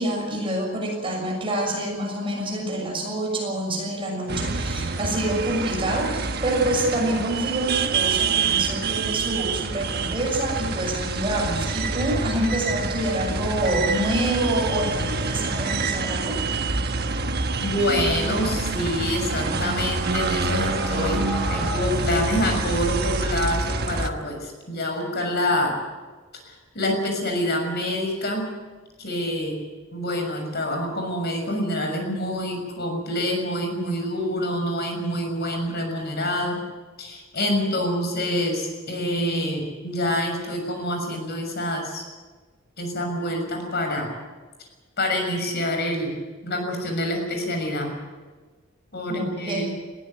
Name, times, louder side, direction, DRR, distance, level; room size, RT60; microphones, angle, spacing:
voice 1, 0.0-16.4 49.1-49.7, right 1 dB, 25° right, 0 dB, 6.6 m, -27 dB
sound 1, 4.3-24.1, right 4 dB, 50° right, 1.2 m, -26 dB
voice 2, 17.6-25.8 26.5-28.5 29.0-29.6 29.9-36.6 37.0-42.0 42.8-44.1 45.0-46.1 46.4-47.9 48.9-49.7, left 1 dB, 55° left, 3 dB, 6.6 m, -26 dB
sound 2, 19.2-22.9, equal, 5° left, 6.7 m, -36 dB
21.0 x 16.0 x 9.5 m, 1.3 s
head